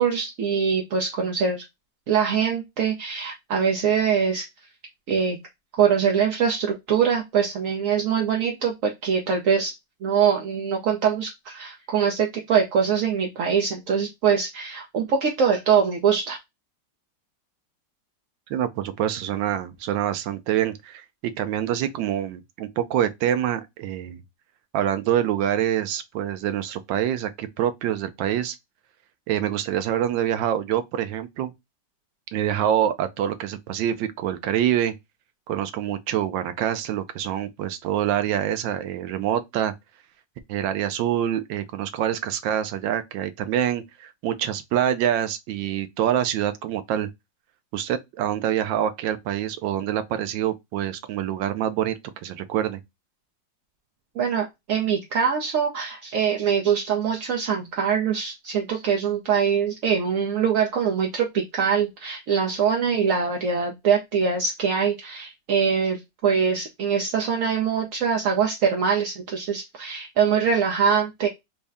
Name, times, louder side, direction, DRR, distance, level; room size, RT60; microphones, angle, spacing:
voice 1, 0.0-1.6 2.1-4.5 5.1-5.4 5.8-9.7 10.0-16.4 54.2-71.3, right 7 dB, 65° right, 0.9 m, -23 dB
voice 2, 18.5-24.2 24.7-28.6 29.3-31.5 32.3-34.9 35.5-39.7 40.5-47.1 47.7-51.9 52.2-52.8, right 10 dB, 85° right, 1.3 m, -26 dB
4.0 x 2.1 x 3.4 m
omnidirectional pair, 2.0 m